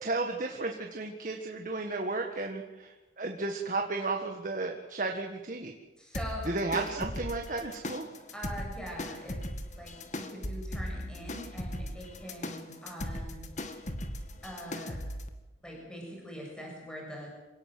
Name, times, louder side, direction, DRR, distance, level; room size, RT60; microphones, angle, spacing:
voice 1, 0.0-5.7 6.5-8.1, right 3 dB, 45° right, 2 dB, 1.8 m, -33 dB
voice 2, 6.0-6.5 8.3-9.4 9.7-13.5 14.4-15.0 15.6-17.3, equal, 5° left, -2 dB, 7.1 m, -43 dB
sound 1, 6.1-15.3, left 1 dB, 40° left, 1.9 m, -39 dB
27.0 x 18.0 x 7.8 m, 1.1 s
head